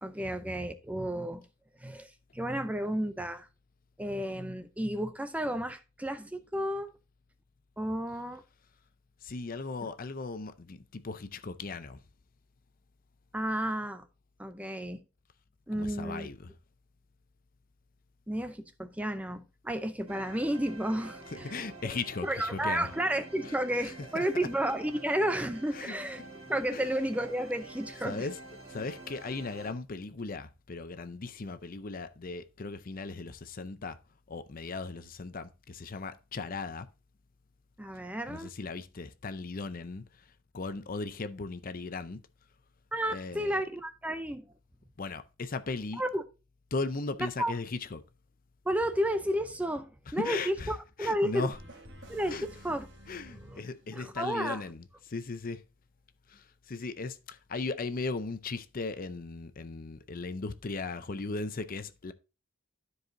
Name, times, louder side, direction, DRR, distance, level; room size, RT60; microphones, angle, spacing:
voice 1, 0.0-1.4 1.8-3.5 4.0-6.9 7.8-8.4 9.8-9.9 13.3-14.1 14.4-15.0 15.7-16.3 18.3-21.6 22.2-26.2 26.5-28.3 37.8-38.5 42.9-44.5 46.0-46.2 47.2-47.5 48.6-51.5 52.1-52.9 53.4-53.6 53.9-54.6, right 1 dB, 5° right, 0.5 m, -32 dB
voice 2, 9.2-12.0 15.7-16.5 21.3-22.9 23.4-23.6 24.1-24.3 25.7-26.0 26.7-26.9 28.0-28.4 28.6-34.0 34.3-36.9 38.3-42.2 43.1-43.6 45.0-46.0 46.7-48.0 50.2-50.7 51.0-51.6 52.3-52.5 53.1-55.6 56.3-62.1, left 3 dB, 45° left, 0.6 m, -37 dB
sound 1, 20.1-29.7, right 2 dB, 30° right, 1.6 m, -47 dB
sound 2, 51.5-54.3, equal, 60° right, 1.5 m, -51 dB
13.0 x 4.8 x 2.7 m
head